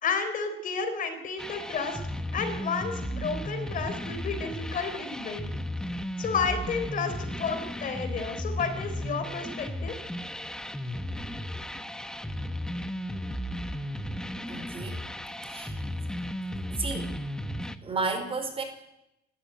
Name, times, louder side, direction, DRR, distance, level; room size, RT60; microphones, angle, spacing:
voice 1, 0.0-2.0 2.3-5.5 6.2-10.0, left 5 dB, 45° left, 8 dB, 4.2 m, -31 dB
sound 1, 1.4-17.7, equal, 5° left, 1.1 m, -35 dB
voice 2, 14.5-15.0 15.5-15.8 16.7-17.1 17.8-18.6, right 3 dB, 30° right, 8 dB, 4.3 m, -32 dB
28.0 x 13.5 x 9.2 m, 0.87 s
cardioid pair, 130°, 20 cm